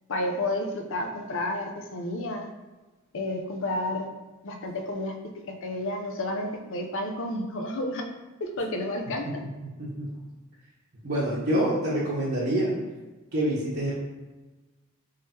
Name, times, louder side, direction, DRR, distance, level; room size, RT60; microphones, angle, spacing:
voice 1, 0.1-2.5 3.1-4.1 4.4-5.2 5.6-8.0 8.4-9.4, left 1 dB, 65° left, 4 dB, 0.6 m, -31 dB
voice 2, 11.0-12.7 13.3-13.9, right 1 dB, 50° right, -10 dB, 1.0 m, -26 dB
3.7 x 3.3 x 4.2 m, 1.2 s
head